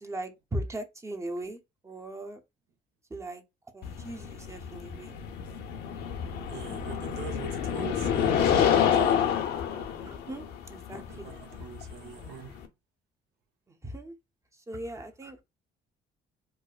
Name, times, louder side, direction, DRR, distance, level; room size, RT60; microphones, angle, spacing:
voice 1, 0.0-2.4 3.1-3.4 3.7-5.2 10.0-11.3 13.7-14.2 14.5-15.4, right 1 dB, 15° right, 0.7 m, -39 dB
sound 1, 3.8-12.7, left 8 dB, 75° left, 0.7 m, -28 dB
voice 2, 6.5-9.2 10.9-12.6, right 7 dB, 80° right, 1.0 m, -44 dB
4.7 x 2.1 x 2.4 m
cardioid pair, 110°, 17 cm